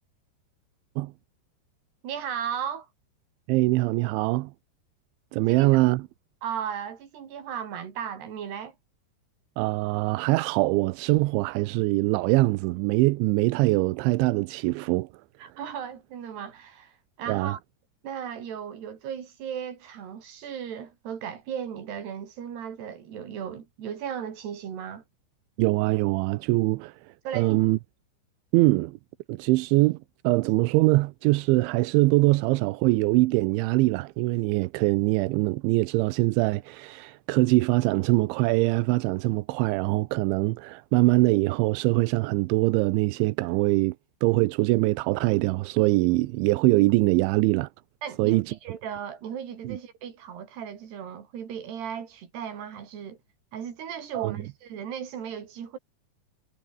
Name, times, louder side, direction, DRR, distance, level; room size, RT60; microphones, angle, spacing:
voice 1, 2.0-2.9 5.4-5.8 6.4-8.8 15.4-17.6 18.0-25.0 27.3-27.6 48.0-53.2 53.5-55.8, right 8 dB, 65° right, 5.4 m, -36 dB
voice 2, 3.5-4.5 5.3-6.1 9.6-15.1 17.3-17.6 25.6-27.8 28.5-29.0 29.3-30.0 30.2-44.0 44.2-47.7 48.2-48.5 49.6-49.8 54.1-54.4, right 21 dB, 90° right, 3.1 m, -23 dB
omnidirectional pair, 5.2 m